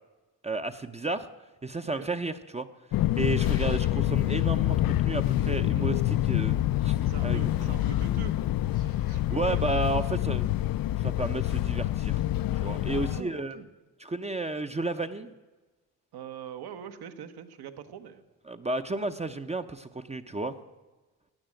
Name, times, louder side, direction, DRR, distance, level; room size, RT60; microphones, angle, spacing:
voice 1, 0.4-1.3 1.6-2.7 3.2-6.6 6.8-6.9 7.2-7.7 9.3-10.5 11.0-12.2 12.6-13.6 14.0-15.3 18.5-20.5, right 2 dB, 15° right, 8 dB, 0.6 m, -32 dB
Fixed-wing aircraft airplane, 2.9-13.2, left 14 dB, 60° left, 0.5 m, -26 dB
voice 2, 3.2-3.7 7.1-8.4 8.7-9.6 12.8-13.7 16.1-18.2, right 8 dB, 80° right, 8 dB, 1.4 m, -43 dB
16.0 x 10.0 x 7.6 m, 1.2 s
cardioid pair, 120°, 39 cm